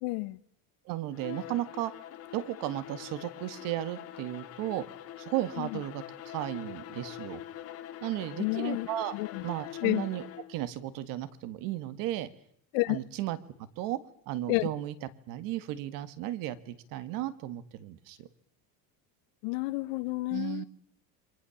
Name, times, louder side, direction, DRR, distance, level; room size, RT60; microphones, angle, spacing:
voice 1, 0.0-0.4 5.6-5.8 8.4-8.9 9.1-9.4 9.8-10.1 12.7-13.0 14.5-14.7 19.4-20.6, left 23 dB, 75° left, 1.2 m, -30 dB
voice 2, 0.9-1.9 2.3-4.8 5.2-7.4 8.0-9.2 9.4-10.2 10.5-12.3 12.9-13.4 13.8-14.0 14.3-14.9 15.3-18.3 20.3-20.7, right 14 dB, 55° right, 1.9 m, -34 dB
Bowed string instrument, 1.1-10.6, left 12 dB, 35° left, 2.3 m, -44 dB
28.0 x 24.0 x 7.2 m
cardioid pair, 175°, 40 cm